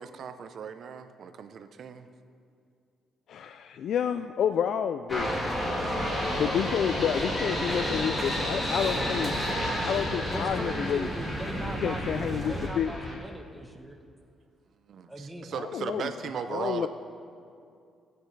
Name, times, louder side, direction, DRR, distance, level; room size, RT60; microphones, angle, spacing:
voice 1, 0.0-2.1 14.9-16.9, right 6 dB, 60° right, 9 dB, 0.7 m, -37 dB
voice 2, 3.3-5.3 6.4-9.3 9.8-11.1 11.8-12.9 15.6-16.1 16.5-16.9, left 8 dB, 70° left, 9 dB, 0.3 m, -29 dB
sound 1, 5.1-13.1, equal, 25° left, 3.2 m, -31 dB
sound 2, 5.1-12.7, right 1 dB, 25° right, 2.3 m, -37 dB
voice 3, 10.3-14.0 15.1-15.5, right 1 dB, 5° right, 2 dB, 1.0 m, -39 dB
18.0 x 9.3 x 3.3 m, 2.5 s
cardioid pair, 90°, 0 cm